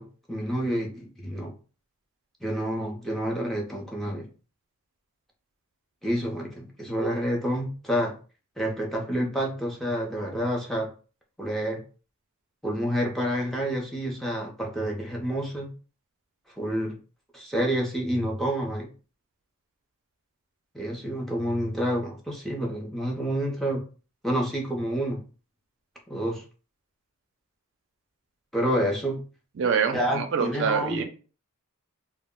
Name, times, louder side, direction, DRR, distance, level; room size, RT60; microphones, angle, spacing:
voice 1, 0.0-1.6 2.4-4.3 6.0-8.1 8.6-10.9 11.4-11.8 12.6-15.7 16.6-16.9 17.3-18.9 20.7-23.9 24.2-25.2 26.1-26.4 28.5-29.2 29.9-31.0, equal, ahead, -2 dB, 0.5 m, -28 dB
voice 2, 29.6-31.0, right 6 dB, 55° right, 6 dB, 0.4 m, -25 dB
2.2 x 2.1 x 3.6 m, 0.37 s
head